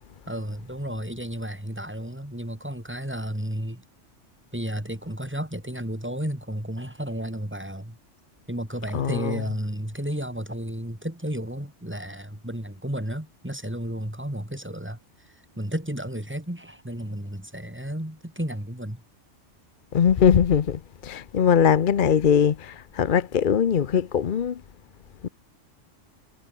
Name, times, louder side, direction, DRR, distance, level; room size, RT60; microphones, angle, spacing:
voice 1, 0.3-3.8 4.5-8.0 8.5-15.0 15.6-19.0, right 1 dB, 10° right, 3.6 m, -32 dB
voice 2, 8.9-9.4 19.9-24.6 25.2-25.3, left 8 dB, 50° left, 0.8 m, -21 dB
omnidirectional pair, 1.3 m